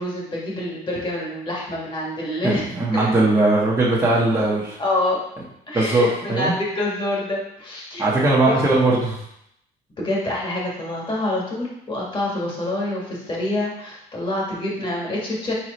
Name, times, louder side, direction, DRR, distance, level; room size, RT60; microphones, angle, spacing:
voice 1, 0.0-2.7 2.9-3.1 4.8-5.2 5.7-8.1 8.5-8.7 10.0-15.5, left 1 dB, 30° left, -4 dB, 1.6 m, -26 dB
voice 2, 2.4-4.8 5.7-6.5 8.0-9.2, right 2 dB, 15° right, -6 dB, 1.0 m, -19 dB
4.3 x 3.8 x 3.1 m, 0.76 s
cardioid pair, 110°, 17 cm